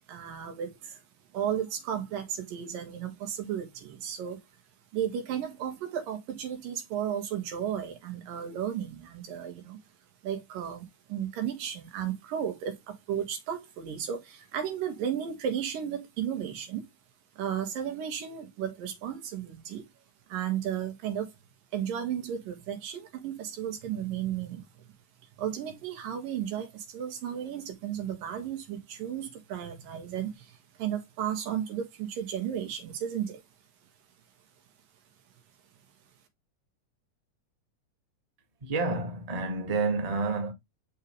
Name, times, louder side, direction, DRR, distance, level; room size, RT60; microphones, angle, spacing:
voice 1, 0.1-1.0 1.3-4.4 4.9-9.8 10.2-16.8 17.4-19.8 20.3-21.3 21.7-24.7 25.4-33.4, right 9 dB, 90° right, 3.5 m, -34 dB
voice 2, 38.6-40.5, right 3 dB, 20° right, 1.1 m, -29 dB
6.6 x 5.8 x 3.1 m
omnidirectional pair, 3.8 m